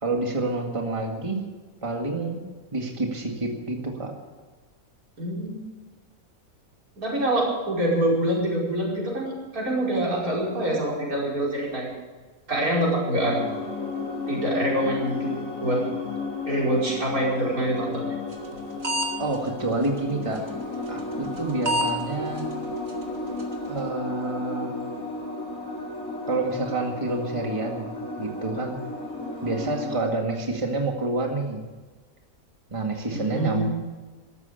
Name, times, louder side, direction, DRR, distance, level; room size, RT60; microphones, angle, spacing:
voice 1, 0.0-1.4 1.8-2.4 2.7-4.1 19.2-20.5 20.9-22.5 23.7-24.7 26.3-27.9 28.2-28.8 29.4-31.6 32.7-33.7, right 2 dB, 20° right, 2 dB, 1.9 m, -28 dB
voice 2, 5.2-5.6 7.0-11.9 12.5-13.4 14.3-15.3 15.6-15.8 16.5-18.1 33.1-33.7, right 1 dB, 90° right, -4 dB, 5.6 m, -25 dB
sound 1, 13.2-30.0, left 3 dB, 75° left, 3.5 m, -33 dB
sound 2, 18.3-18.6 18.8-19.1 19.3-19.4 20.3-20.5 21.4-21.5 21.6-21.9 22.4-22.5 22.9-23.0 23.4-23.5, right 1 dB, 70° right, 2.6 m, -25 dB
14.5 x 12.5 x 7.0 m, 1.3 s
omnidirectional pair, 1.5 m